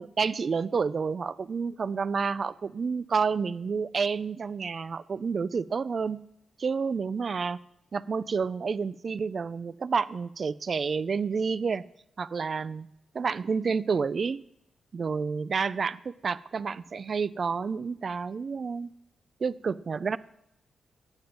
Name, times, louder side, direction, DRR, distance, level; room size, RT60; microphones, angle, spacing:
voice 1, 0.0-6.2 6.6-7.6 7.9-11.8 12.2-12.9 13.1-14.4 14.9-18.9 19.4-20.2, right 5 dB, 45° right, 18 dB, 0.3 m, -29 dB
9.1 x 7.0 x 5.3 m, 0.81 s
cardioid pair, 105°, 0 cm